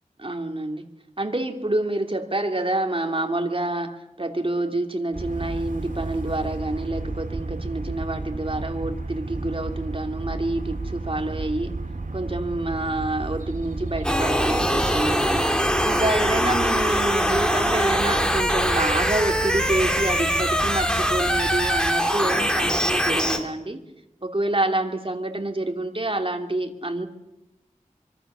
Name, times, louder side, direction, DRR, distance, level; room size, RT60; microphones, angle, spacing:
voice 1, 0.2-0.8 1.2-11.7 12.1-15.4 15.8-23.8 24.2-27.1, right 2 dB, 40° right, 4 dB, 2.9 m, -27 dB
sound 1, 5.1-21.9, right 3 dB, 85° right, 2.7 m, -33 dB
sound 2, 14.0-23.4, equal, 5° left, 3.3 m, -23 dB
25.0 x 23.5 x 6.9 m, 0.94 s
wide cardioid pair, 45°, 13 cm